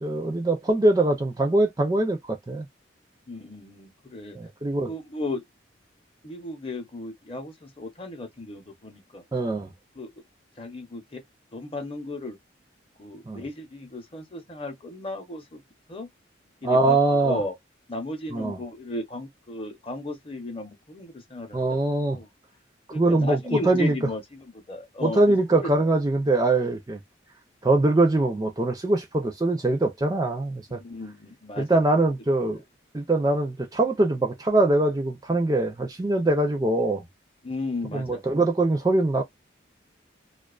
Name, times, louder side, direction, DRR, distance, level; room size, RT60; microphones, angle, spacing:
voice 1, 0.0-2.6 4.4-4.9 9.3-9.7 13.3-13.4 16.6-17.4 18.3-18.6 21.5-22.2 22.9-24.0 25.0-27.0 27.6-30.8 31.6-32.6 32.9-37.0 37.9-39.2, right 2 dB, 20° right, 0.4 m, -23 dB
voice 2, 3.3-4.4 4.9-5.4 6.2-9.2 10.0-10.1 10.6-11.2 11.5-12.4 13.0-15.6 15.9-16.1 16.6-17.5 17.9-21.8 22.1-22.3 22.9-25.7 30.8-32.1 37.4-38.2, left 2 dB, 30° left, 0.7 m, -35 dB
2.4 x 2.3 x 2.3 m
head